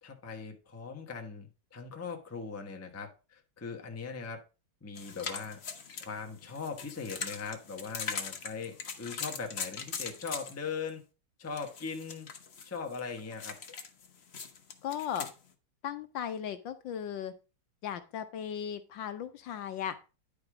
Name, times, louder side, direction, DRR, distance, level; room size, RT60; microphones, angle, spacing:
voice 1, 0.0-4.4 4.8-5.6 6.0-11.0 11.4-12.3 12.6-13.6, left 5 dB, 15° left, 3 dB, 0.6 m, -40 dB
sound 1, 5.0-10.9 11.6-15.3, left 6 dB, 45° left, 0.9 m, -41 dB
voice 2, 14.8-15.3 15.8-17.3 17.8-20.0, left 9 dB, 70° left, 10 dB, 1.3 m, -36 dB
10.5 x 4.9 x 4.8 m, 0.32 s
omnidirectional pair, 2.3 m